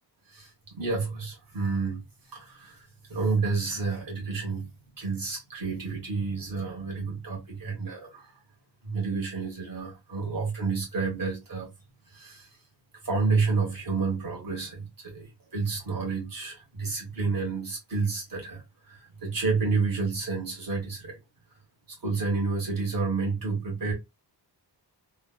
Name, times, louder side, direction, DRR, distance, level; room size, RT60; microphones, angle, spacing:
voice 1, 0.3-2.0 2.3-2.8 3.1-4.6 5.0-8.3 8.8-11.7 12.1-12.5 13.0-18.6 18.9-21.1 22.0-23.9, right 4 dB, 50° right, 1.4 m, -30 dB
3.1 x 2.1 x 2.3 m
wide cardioid pair, 70°, 43 cm